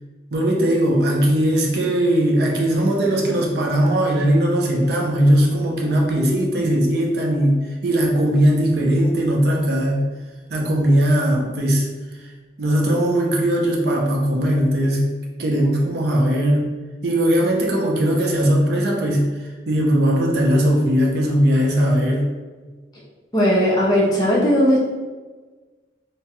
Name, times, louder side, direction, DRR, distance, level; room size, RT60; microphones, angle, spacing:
voice 1, 0.3-10.1 10.5-11.9 12.6-15.1 15.4-16.7 17.0-22.3, equal, 60° right, -1 dB, 0.5 m, -19 dB
voice 2, 23.3-24.8, equal, 20° left, -6 dB, 0.6 m, -17 dB
2.8 x 2.2 x 2.8 m, 1.3 s
head